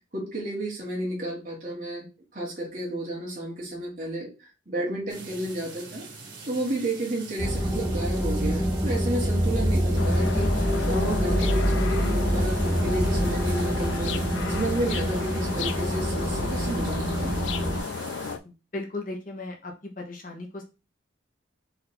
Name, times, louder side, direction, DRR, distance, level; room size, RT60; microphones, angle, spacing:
voice 1, 0.1-2.0 2.3-4.3 4.7-6.0 6.5-14.2 14.5-17.3, right 1 dB, 45° right, -3 dB, 1.7 m, -31 dB
sound 1, 5.1-18.3, right 3 dB, 70° right, 1.9 m, -43 dB
sound 2, 7.4-17.8, equal, 15° right, 0.8 m, -26 dB
sound 3, 9.9-18.4, left 5 dB, 75° left, 0.4 m, -33 dB
voice 2, 18.4-20.6, left 2 dB, 45° left, 1 dB, 0.9 m, -36 dB
4.2 x 2.6 x 4.2 m, 0.30 s
head